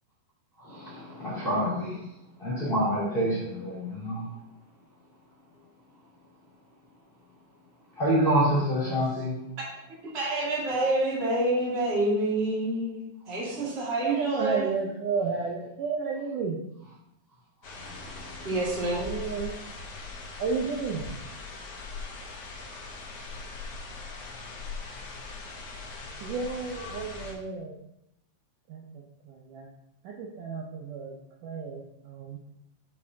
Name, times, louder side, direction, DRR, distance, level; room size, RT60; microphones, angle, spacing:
voice 1, 0.6-2.0 2.4-4.3 8.0-9.4 17.7-18.5, right 1 dB, 20° left, -8 dB, 2.0 m, -27 dB
voice 2, 10.1-14.7 18.4-19.1, right 2 dB, 25° right, -5 dB, 1.4 m, -27 dB
voice 3, 13.9-16.7 19.1-19.6 20.4-21.1 26.2-27.8 28.7-29.7 30.0-31.1 31.4-32.4, right 5 dB, 75° right, -1 dB, 2.0 m, -33 dB
sound 1, 17.6-27.3, left 3 dB, 80° left, 1.3 m, -40 dB
7.3 x 6.7 x 2.8 m, 0.81 s
omnidirectional pair, 4.4 m